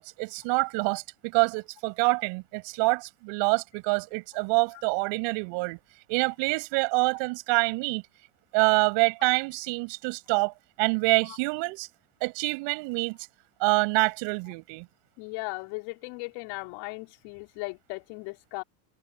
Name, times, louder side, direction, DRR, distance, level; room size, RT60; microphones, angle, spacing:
voice 1, 0.0-5.8 6.1-8.0 8.5-11.9 12.2-13.2 13.6-14.9, right 29 dB, 60° right, 6.0 m, -26 dB
voice 2, 15.2-18.6, left 27 dB, 65° left, 4.5 m, -37 dB
supercardioid pair, 115°, 49 cm